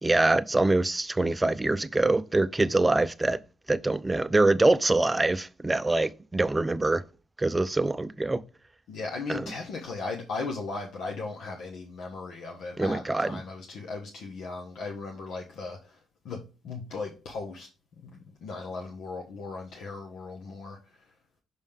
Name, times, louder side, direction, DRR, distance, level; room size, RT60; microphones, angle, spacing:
voice 1, 0.0-3.4 3.7-7.0 7.4-8.4 9.3-9.5 12.8-13.4, right 2 dB, 15° right, 0.5 m, -24 dB
voice 2, 8.9-15.8 16.2-17.7 18.0-18.1 18.4-20.8, left 3 dB, 75° left, 1.2 m, -37 dB
6.3 x 5.3 x 3.6 m
cardioid pair, 90°, 0 cm